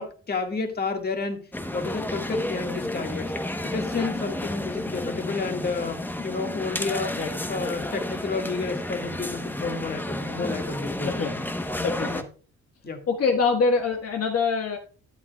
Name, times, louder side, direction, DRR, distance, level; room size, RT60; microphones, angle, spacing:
voice 1, 0.0-1.4 1.7-3.3 3.6-7.2 7.5-11.1 12.1-12.2 12.8-13.0, left 4 dB, 30° left, 4 dB, 1.8 m, -30 dB
sound 1, 1.5-12.2, left 1 dB, 5° left, 0.9 m, -31 dB
voice 2, 11.0-11.4 11.8-12.1 13.1-14.8, left 4 dB, 50° left, 1 dB, 1.4 m, -24 dB
11.5 x 8.8 x 2.3 m, 0.38 s
cardioid pair, 90°, 30 cm